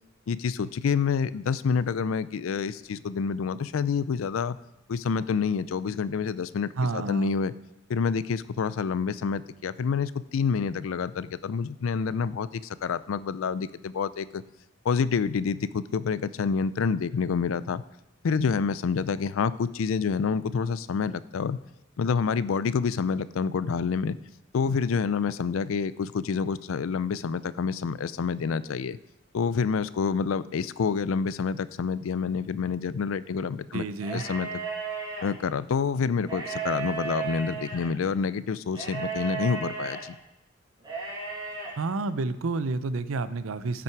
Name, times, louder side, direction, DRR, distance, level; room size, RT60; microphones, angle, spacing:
voice 1, 0.3-4.6 4.9-7.5 7.9-14.4 14.8-17.8 18.2-21.6 22.0-24.2 24.5-29.0 29.3-33.9 34.1-34.5 35.2-40.2, left 5 dB, 80° left, 17 dB, 0.4 m, -28 dB
voice 2, 6.8-7.3 33.7-34.3 41.8-43.8, right 3 dB, 85° right, 13 dB, 0.6 m, -29 dB
sound 1, 34.0-35.3 36.2-37.9 38.7-40.0 40.8-41.7, right 5 dB, 20° right, 3.5 m, -34 dB
15.5 x 6.0 x 4.6 m, 0.90 s
head